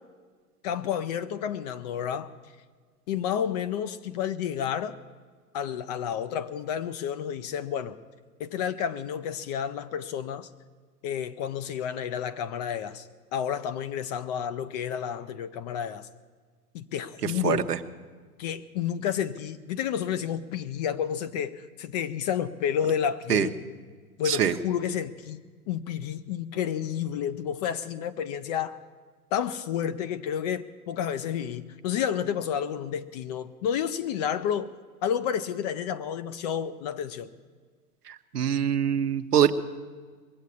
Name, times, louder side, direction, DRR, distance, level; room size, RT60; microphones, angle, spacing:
voice 1, 0.6-2.3 3.1-5.0 5.5-8.0 8.4-10.5 11.0-16.1 16.7-17.7 18.4-23.6 24.2-28.8 29.3-34.7 35.0-37.3, left 8 dB, 30° left, 0.4 m, -30 dB
voice 2, 17.4-17.8 23.3-23.5 24.3-24.5 38.3-39.5, right 9 dB, 85° right, 1.0 m, -23 dB
21.0 x 8.2 x 8.2 m
hypercardioid pair, 110°, 46 cm